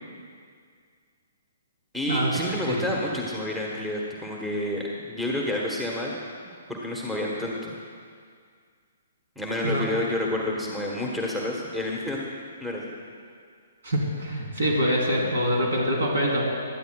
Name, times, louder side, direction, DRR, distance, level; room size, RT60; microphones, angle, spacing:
voice 1, 1.9-6.1 6.7-7.8 9.4-12.3 12.6-12.9, left 1 dB, 5° right, -3 dB, 1.3 m, -29 dB
voice 2, 13.8-16.4, equal, 65° right, -2 dB, 3.3 m, -25 dB
19.0 x 12.5 x 2.3 m, 2.1 s
figure-of-eight pair, 125°, 0 cm